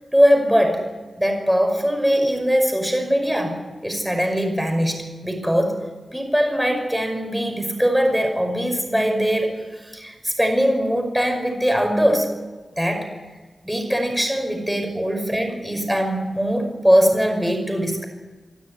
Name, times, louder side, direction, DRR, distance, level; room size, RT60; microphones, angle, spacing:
voice 1, 0.1-0.8 1.2-3.6 3.8-5.8 6.1-12.3 12.8-13.1 13.6-18.1, equal, ahead, 4 dB, 5.6 m, -21 dB
27.0 x 12.5 x 9.7 m, 1.3 s
wide cardioid pair, 105°, 0 cm